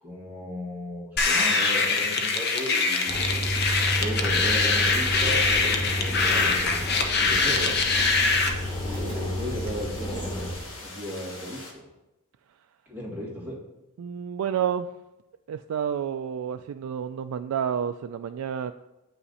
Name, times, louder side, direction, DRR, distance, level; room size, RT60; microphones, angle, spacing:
voice 1, 0.0-3.2 4.0-6.9 7.2-7.8 8.8-11.8 12.9-13.6, equal, 10° right, 2.0 m, -36 dB
sound 1, 1.2-8.5, left 4 dB, 45° left, 0.8 m, -23 dB
sound 2, 3.1-10.6, equal, 20° left, 1.4 m, -31 dB
sound 3, 6.6-11.7, left 2 dB, 65° left, 1.6 m, -43 dB
voice 2, 14.0-14.9 15.5-18.7, right 8 dB, 85° right, 0.3 m, -29 dB
8.2 x 5.7 x 4.1 m
head